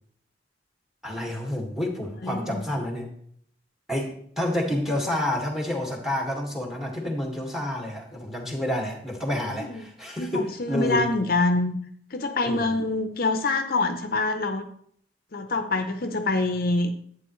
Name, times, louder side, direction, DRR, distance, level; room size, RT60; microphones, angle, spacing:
voice 1, 1.0-3.1 3.9-11.1 12.4-12.8, left 1 dB, ahead, 1 dB, 1.9 m, -29 dB
voice 2, 2.2-2.6 9.6-9.8 10.2-11.8 12.1-14.7 15.3-16.9, left 3 dB, 55° left, 7 dB, 0.7 m, -25 dB
11.5 x 8.9 x 3.2 m, 0.64 s
head